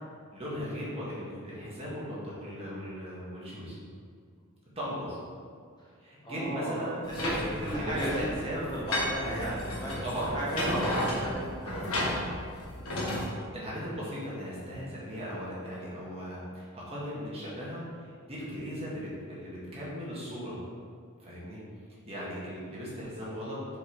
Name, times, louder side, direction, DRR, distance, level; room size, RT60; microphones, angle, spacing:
voice 1, 0.3-3.8 4.7-5.2 6.0-7.0 7.4-8.7 10.0-10.3 10.7-11.0 13.5-20.6 21.2-21.6 22.0-23.6, equal, 30° right, -7 dB, 1.7 m, -37 dB
voice 2, 6.2-8.2 8.5-10.0 10.3-10.9 11.2-12.3 13.7-13.8, right 1 dB, 20° left, -7 dB, 1.5 m, -35 dB
sound 1, 7.0-13.2, left 1 dB, 70° left, 1.4 m, -33 dB
5.4 x 4.7 x 4.8 m, 2.2 s
head